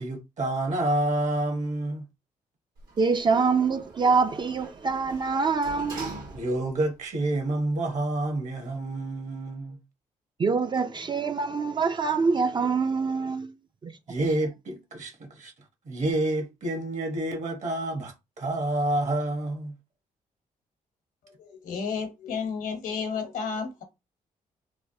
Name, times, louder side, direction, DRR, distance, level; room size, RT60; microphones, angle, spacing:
voice 1, 0.0-2.1 6.3-9.8 14.1-15.5 15.8-19.8, right 1 dB, 55° right, 1.1 m, -28 dB
Sliding door, 2.8-6.9 7.3-7.4, right 3 dB, 80° right, 1.4 m, -43 dB
voice 2, 3.0-6.1 10.4-13.5 13.8-13.9, right 4 dB, 35° right, 0.3 m, -25 dB
voice 3, 21.2-23.8, left 5 dB, 80° left, 0.9 m, -32 dB
3.2 x 2.1 x 2.6 m
cardioid pair, 85°, 14 cm